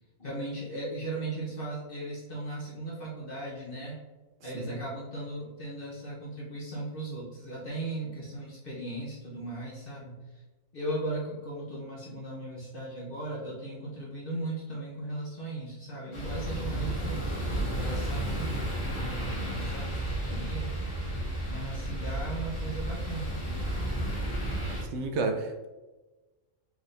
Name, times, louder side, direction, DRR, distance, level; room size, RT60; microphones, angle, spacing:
voice 1, 0.2-4.0 4.4-10.4 10.7-20.7 21.5-23.6, right 2 dB, 45° left, -6 dB, 1.2 m, -37 dB
sound 1, 16.1-24.8, right 1 dB, 25° left, 1.2 m, -32 dB
voice 2, 24.9-25.7, right 3 dB, 70° right, 5 dB, 0.9 m, -31 dB
4.7 x 3.8 x 2.6 m, 1.2 s
omnidirectional pair, 1.3 m